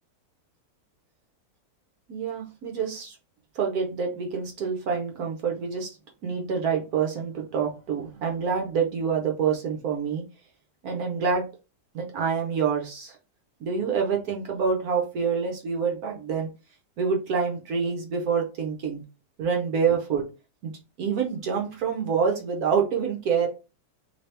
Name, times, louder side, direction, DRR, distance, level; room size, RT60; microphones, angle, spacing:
voice 1, 2.1-3.2 3.5-6.0 6.2-10.2 10.8-11.5 11.9-13.2 13.6-16.5 17.0-19.0 19.4-20.3 20.6-20.7 21.0-23.5, right 6 dB, 65° right, 1 dB, 1.2 m, -27 dB
3.2 x 2.8 x 3.3 m, 0.30 s
omnidirectional pair, 1.8 m